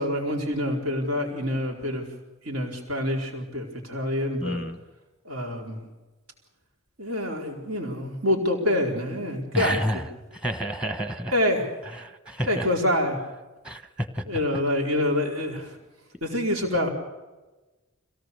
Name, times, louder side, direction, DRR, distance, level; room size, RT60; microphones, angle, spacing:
voice 1, 0.0-2.1 2.4-4.6 5.2-5.8 7.0-10.0 11.3-11.7 12.5-13.2 14.3-15.8 16.2-16.9, left 1 dB, 75° right, 0 dB, 4.4 m, -26 dB
voice 2, 4.4-4.8 9.5-10.0 10.3-11.3 12.0-12.7 13.6-14.2, equal, 5° right, 8 dB, 1.1 m, -29 dB
26.5 x 17.5 x 6.8 m, 1.2 s
head